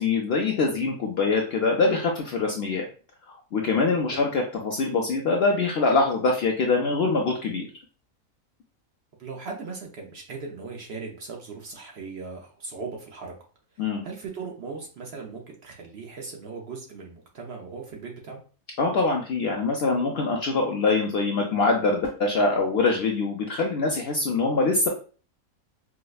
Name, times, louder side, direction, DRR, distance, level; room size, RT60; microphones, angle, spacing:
voice 1, 0.0-2.9 3.5-7.7 13.8-14.0 18.8-24.9, left 3 dB, 65° left, 1 dB, 0.6 m, -24 dB
voice 2, 9.2-13.3 13.7-18.4, right 4 dB, 60° right, 0 dB, 0.7 m, -38 dB
4.7 x 2.1 x 2.3 m, 0.38 s
omnidirectional pair, 1.5 m